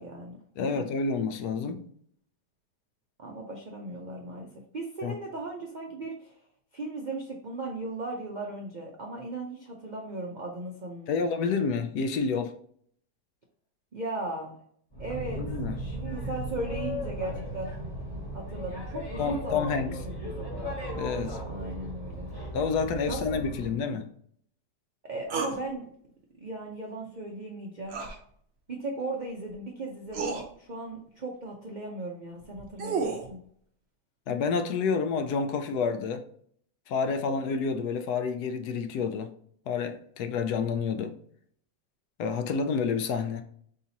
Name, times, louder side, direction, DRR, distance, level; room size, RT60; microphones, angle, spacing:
voice 1, 0.0-0.9 3.2-4.5 4.7-6.3 6.7-11.2 13.9-14.6 15.0-15.4 15.8-17.7 18.3-20.7 21.4-22.3 23.0-24.0 25.0-25.9 26.4-28.0 28.7-33.4, right 2 dB, 90° right, 0.4 m, -37 dB
voice 2, 0.6-1.8 5.0-5.1 11.1-12.5 15.4-15.8 19.2-19.9 20.9-21.4 22.5-24.1 34.3-36.2 36.9-39.3 39.7-41.2 42.2-43.4, left 5 dB, 75° left, 1.0 m, -29 dB
Boat Water vehicle, 14.9-23.7, equal, 20° left, 0.7 m, -36 dB
sound 1, 25.3-25.6 27.9-28.2 29.5-29.6 30.1-30.4 32.4-33.3, right 4 dB, 50° right, 0.8 m, -31 dB
4.1 x 3.6 x 2.8 m
omnidirectional pair, 1.8 m